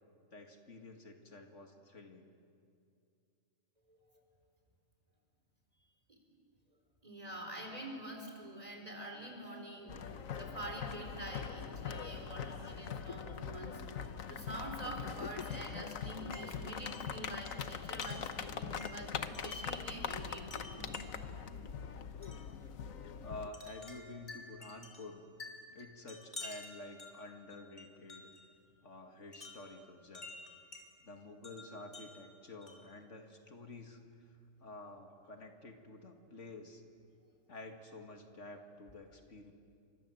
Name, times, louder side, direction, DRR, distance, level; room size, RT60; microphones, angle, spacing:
voice 1, 0.3-2.3 23.2-25.2 25.7-28.3 28.8-30.4 31.0-36.8 37.5-39.5, left 2 dB, 65° left, 4 dB, 2.2 m, -50 dB
voice 2, 3.9-4.2 6.1-6.2 7.0-10.1 10.4-21.0 23.6-23.7, right 1 dB, 30° right, 3 dB, 4.4 m, -46 dB
sound 1, 9.9-23.5, left 7 dB, 80° left, 1.4 m, -42 dB
Wind chime, 15.4-15.8 16.3-19.9 20.5-21.3 22.2-22.5 23.5-28.5 29.3-30.9 31.4-33.0, left 2 dB, 35° left, 3.4 m, -51 dB
30.0 x 25.0 x 7.8 m, 2.4 s
omnidirectional pair, 1.4 m